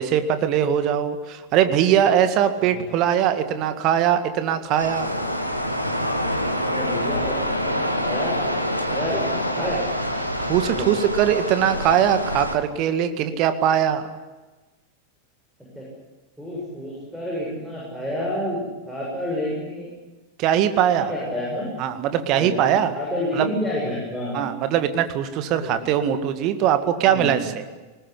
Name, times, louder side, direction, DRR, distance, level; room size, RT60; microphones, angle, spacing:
voice 1, 0.0-5.1 8.9-9.0 9.6-9.7 10.4-14.1 20.4-21.1 21.8-22.9 23.3-23.5 24.3-27.6, right 10 dB, 40° right, 9 dB, 1.9 m, -21 dB
voice 2, 2.6-2.9 6.6-9.8 10.7-10.9 15.7-15.9 16.4-19.9 20.9-21.7 22.3-24.4 25.6-25.9 27.1-27.5, left 1 dB, ahead, -4 dB, 7.8 m, -29 dB
sound 1, 4.8-12.6, equal, 90° left, 2.1 m, -26 dB
20.5 x 20.0 x 10.0 m, 1.2 s
figure-of-eight pair, 90°, 0 cm